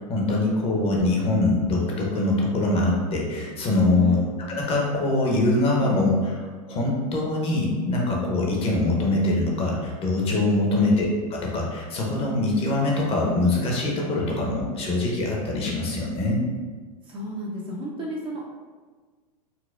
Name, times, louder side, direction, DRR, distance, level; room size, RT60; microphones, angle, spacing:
voice 1, 0.0-4.2 4.5-11.1 11.4-16.4, left 2 dB, 30° left, -2 dB, 0.7 m, -23 dB
voice 2, 4.0-4.3 10.7-11.0 17.0-18.4, equal, 25° right, -3 dB, 0.5 m, -33 dB
4.1 x 2.1 x 2.4 m, 1.4 s
hypercardioid pair, 115°, 21 cm